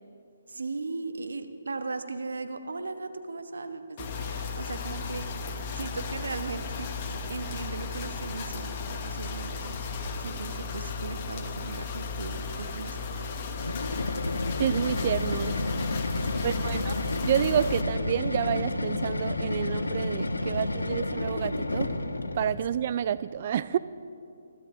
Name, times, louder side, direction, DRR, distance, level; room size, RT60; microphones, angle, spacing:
voice 1, 0.5-5.2 5.7-9.8 10.2-13.6 16.3-16.6, right 3 dB, 75° right, 8 dB, 1.2 m, -38 dB
sound 1, 4.0-17.8, left 4 dB, 35° left, 1.2 m, -35 dB
sound 2, 13.5-22.6, left 2 dB, 85° left, 1.2 m, -30 dB
voice 2, 14.6-15.6 16.4-17.0 17.2-21.9 22.3-23.8, right 9 dB, 45° right, 15 dB, 0.3 m, -29 dB
21.5 x 13.0 x 3.8 m, 2.5 s
figure-of-eight pair, 145°, 0 cm